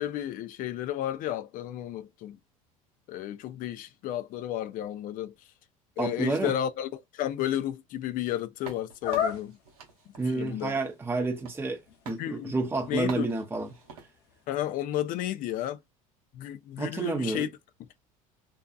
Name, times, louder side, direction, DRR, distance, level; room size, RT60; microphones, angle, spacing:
voice 1, 0.0-2.4 3.1-5.3 6.0-9.6 10.3-10.8 12.2-12.6 12.9-13.3 14.5-15.8 16.3-17.5, left 12 dB, 50° left, 0.4 m, -32 dB
voice 2, 6.0-6.5 10.2-11.8 12.1-13.7 16.8-17.5, right 3 dB, 10° right, 0.6 m, -29 dB
sound 1, 8.6-11.8 12.1-12.3 13.1-14.1, right 6 dB, 85° right, 0.8 m, -47 dB
sound 2, 9.0-9.7 10.4-10.5 10.8-14.4, left 9 dB, 65° left, 0.8 m, -35 dB
2.7 x 2.3 x 2.3 m
hypercardioid pair, 80°, 18 cm